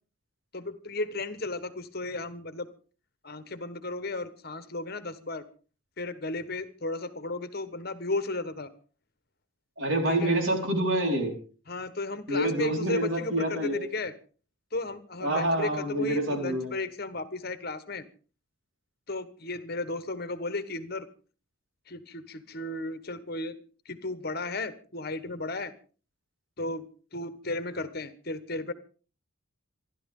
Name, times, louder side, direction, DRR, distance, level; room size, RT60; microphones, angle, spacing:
voice 1, 0.5-2.7 3.2-5.4 6.0-8.7 10.1-10.3 11.7-14.1 14.7-18.0 19.1-21.1 21.9-23.6 23.8-25.7 26.6-26.8 27.1-28.7, left 2 dB, 45° left, 12 dB, 1.3 m, -34 dB
voice 2, 9.8-11.3 12.3-13.8 15.2-16.7, right 1 dB, 65° right, 2 dB, 4.7 m, -27 dB
27.5 x 12.0 x 3.8 m, 0.38 s
head